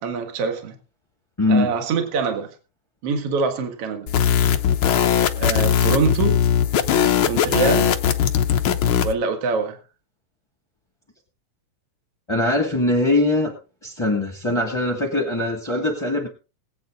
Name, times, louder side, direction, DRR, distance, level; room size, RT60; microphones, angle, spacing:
voice 1, 0.0-0.8 1.5-2.5 3.0-4.1 5.4-6.4 7.3-7.9 9.0-9.8, right 5 dB, 50° right, 6 dB, 2.5 m, -24 dB
voice 2, 1.4-1.7 12.3-13.5 13.8-16.3, left 2 dB, 10° left, 3 dB, 1.4 m, -21 dB
sound 1, 4.1-9.1, left 9 dB, 85° left, 1.1 m, -19 dB
20.5 x 8.9 x 3.8 m, 0.33 s
omnidirectional pair, 3.8 m